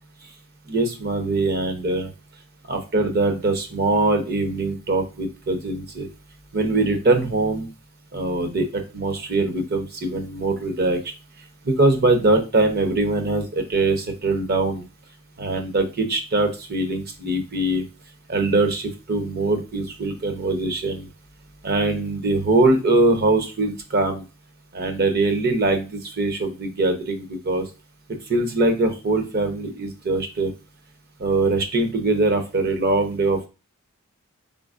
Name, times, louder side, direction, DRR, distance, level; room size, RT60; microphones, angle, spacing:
voice 1, 0.7-2.1 2.7-6.1 6.5-7.7 8.1-11.0 11.6-14.8 15.4-17.8 18.3-21.1 21.6-24.2 24.7-27.7 28.3-30.5 31.2-33.5, right 2 dB, 45° right, 6 dB, 0.8 m, -22 dB
4.2 x 3.8 x 2.4 m, 0.31 s
head